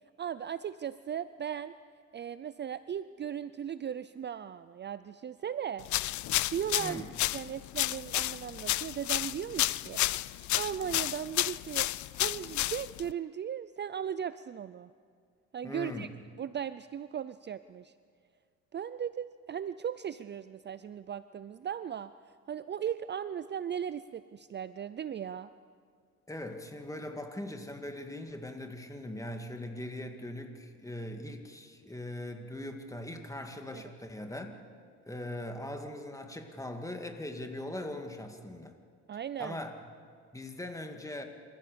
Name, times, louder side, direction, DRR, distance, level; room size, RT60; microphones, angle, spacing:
voice 1, 0.2-1.7 2.1-5.9 6.5-7.0 7.3-14.9 15.5-16.1 16.4-17.9 18.7-22.1 22.5-25.5 33.7-33.8 39.1-39.6, right 9 dB, 35° right, 14 dB, 0.5 m, -37 dB
sound 1, 5.9-13.1, left 16 dB, 75° left, 0.5 m, -31 dB
voice 2, 15.6-16.1 26.3-34.6 35.1-38.7 39.4-39.7 40.3-41.2, left 1 dB, 10° left, 5 dB, 2.3 m, -40 dB
27.0 x 15.0 x 6.9 m, 2.1 s
cardioid pair, 90°, 30 cm